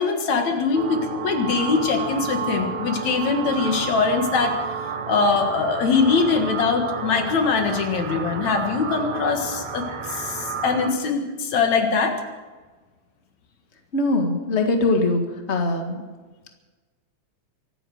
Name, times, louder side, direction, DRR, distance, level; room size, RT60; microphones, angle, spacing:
voice 1, 0.0-4.6 5.1-12.2, left 5 dB, 65° left, 4 dB, 2.9 m, -22 dB
sound 1, 0.8-10.9, right 6 dB, 65° right, 2.7 m, -31 dB
voice 2, 13.9-15.2 15.5-16.0, left 2 dB, 25° left, 4 dB, 1.6 m, -21 dB
24.5 x 9.2 x 6.4 m, 1.3 s
omnidirectional pair, 3.6 m